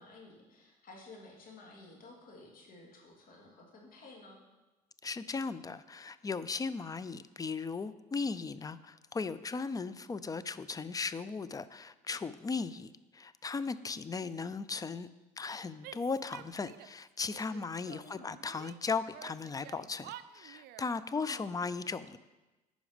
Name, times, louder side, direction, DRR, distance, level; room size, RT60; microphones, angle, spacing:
voice 1, 0.0-4.4 18.0-18.5 21.1-21.5, left 3 dB, 60° left, -1 dB, 2.5 m, -53 dB
voice 2, 5.0-15.1 15.4-22.2, left 4 dB, 20° left, 15 dB, 0.4 m, -37 dB
Female speech woman speaking / Yell, 15.8-17.0 17.3-18.8 19.1-20.9, right 13 dB, 70° right, 0.4 m, -51 dB
9.8 x 5.2 x 5.1 m, 1.1 s
supercardioid pair, 80°, 17 cm